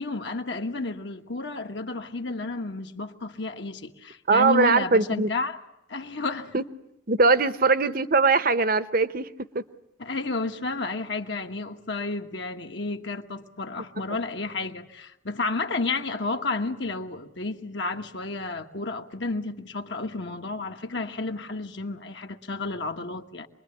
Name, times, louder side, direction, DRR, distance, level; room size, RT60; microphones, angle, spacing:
voice 1, 0.0-5.6 5.9-6.5 10.0-23.5, left 3 dB, 65° left, 1.5 m, -31 dB
voice 2, 4.3-5.3 6.5-6.6 7.1-9.3 9.5-9.6, right 4 dB, 50° right, 1.0 m, -21 dB
27.0 x 21.5 x 10.0 m
head